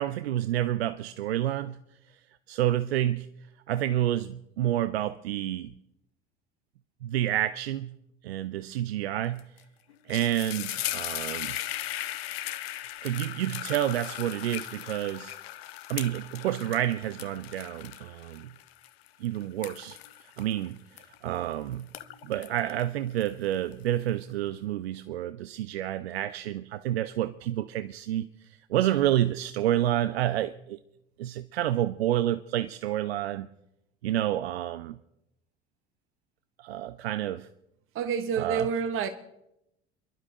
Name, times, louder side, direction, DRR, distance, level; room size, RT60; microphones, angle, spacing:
voice 1, 0.0-1.8 2.5-3.3 3.7-5.7 7.0-7.9 8.2-9.5 10.1-11.6 13.0-15.4 15.9-18.5 19.2-20.0 20.4-20.8 21.2-21.9 22.2-30.8 31.2-33.5 34.0-35.0 36.6-37.5 38.4-38.7, right 12 dB, 75° right, 0.5 m, -29 dB
sound 1, 9.4-9.6 9.9-21.4 21.8-23.7, left 13 dB, 70° left, 0.8 m, -38 dB
voice 2, 37.9-39.1, right 6 dB, 40° right, 1.1 m, -28 dB
28.5 x 11.5 x 2.9 m
figure-of-eight pair, 65°, 32 cm